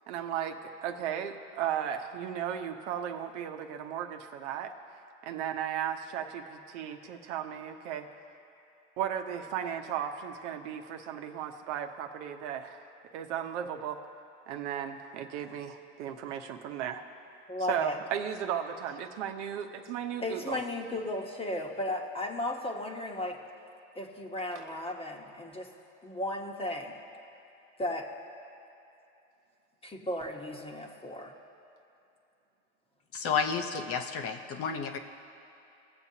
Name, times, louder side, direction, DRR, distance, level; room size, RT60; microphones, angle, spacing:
voice 1, 0.1-4.7 5.2-8.1 9.0-12.8 13.1-14.0 14.5-17.0 17.7-20.6 24.5-24.7, right 9 dB, 70° right, 5 dB, 1.0 m, -35 dB
voice 2, 17.5-18.0 20.2-23.4 23.9-25.7 26.0-27.0 27.8-28.1 29.8-31.3, left 1 dB, 15° left, 1 dB, 1.2 m, -35 dB
voice 3, 33.1-35.0, left 6 dB, 40° left, 5 dB, 0.8 m, -31 dB
20.5 x 7.2 x 2.8 m, 2.8 s
supercardioid pair, 110°, 37 cm